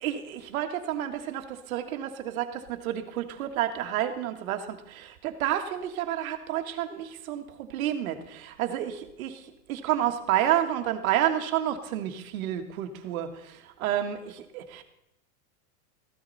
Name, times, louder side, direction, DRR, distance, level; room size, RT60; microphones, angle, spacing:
voice 1, 0.0-14.8, right 11 dB, 60° right, 7 dB, 1.8 m, -30 dB
15.0 x 12.5 x 4.2 m, 0.82 s
supercardioid pair, 165°, 47 cm